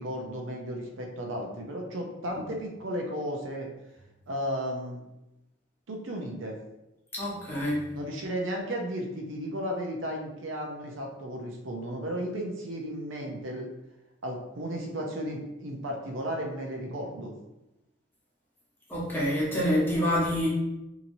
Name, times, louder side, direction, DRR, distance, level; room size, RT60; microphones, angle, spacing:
voice 1, 0.0-3.7 4.3-5.0 5.9-6.6 7.9-13.7 14.2-17.3, equal, 75° right, 1 dB, 0.5 m, -34 dB
voice 2, 7.1-7.8 18.9-20.5, equal, 10° left, -7 dB, 0.9 m, -27 dB
2.9 x 2.7 x 2.6 m, 0.92 s
head